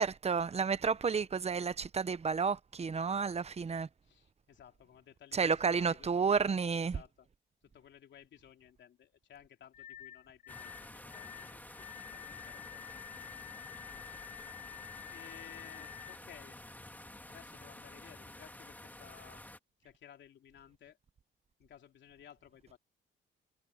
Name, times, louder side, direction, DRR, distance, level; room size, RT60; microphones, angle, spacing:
voice 1, 0.0-3.9 5.3-7.0, right 5 dB, 30° right, 1.0 m, -31 dB
voice 2, 4.0-6.6 6.9-7.3 7.6-12.9 15.1-16.6 17.3-19.4 19.8-21.0 21.6-22.8, left 10 dB, 65° left, 3.1 m, -57 dB
sound 1, 9.7-16.2, left 11 dB, 45° left, 2.8 m, -49 dB
sound 2, 10.5-19.6, left 1 dB, 10° left, 2.8 m, -51 dB
cardioid pair, 90°, 20 cm